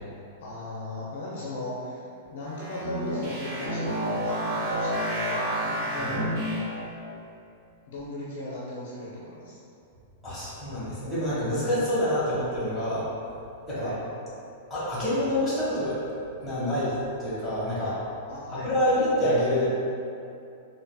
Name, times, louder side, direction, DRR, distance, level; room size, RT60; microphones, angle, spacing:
voice 1, 0.4-2.0 2.3-6.4 7.9-9.6 13.7-13.9 18.3-18.9, left 1 dB, 65° left, -7 dB, 0.7 m, -37 dB
sound 1, 2.5-6.9, equal, 40° right, 1.0 m, -30 dB
voice 2, 10.2-13.1 13.7-13.9 14.7-18.0 18.6-19.7, equal, 5° left, -13 dB, 1.4 m, -27 dB
4.0 x 3.2 x 2.3 m, 2.6 s
supercardioid pair, 160°, 0 cm